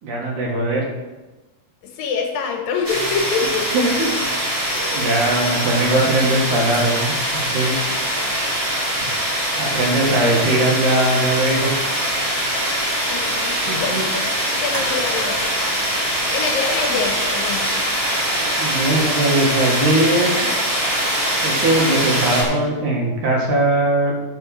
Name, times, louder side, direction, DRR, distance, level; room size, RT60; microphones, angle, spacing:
voice 1, 0.0-0.9 3.7-4.1 4.9-7.7 9.6-11.7 13.7-14.0 18.6-20.5 21.4-24.1, right 2 dB, 65° right, -2 dB, 3.0 m, -20 dB
voice 2, 1.8-3.7 4.7-5.1 5.4-5.9 7.6-7.9 13.1-15.5 16.3-17.7, left 5 dB, 85° left, 2 dB, 3.1 m, -26 dB
sound 1, 2.8-22.4, equal, 10° right, 1.9 m, -22 dB
11.0 x 4.9 x 6.4 m, 1.1 s
omnidirectional pair, 4.0 m